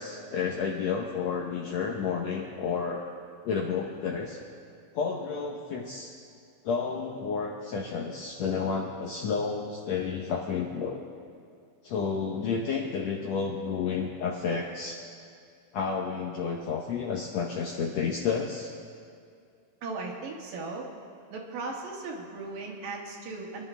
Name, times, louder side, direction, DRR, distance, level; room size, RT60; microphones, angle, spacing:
voice 1, 0.0-3.0 3.4-4.4 4.9-6.1 6.6-11.0 11.8-15.0 15.7-18.7, left 5 dB, 70° left, 0 dB, 1.6 m, -31 dB
voice 2, 19.8-20.9 21.3-23.6, right 3 dB, 70° right, -1 dB, 3.2 m, -37 dB
25.0 x 11.0 x 3.4 m, 2.3 s
omnidirectional pair, 4.1 m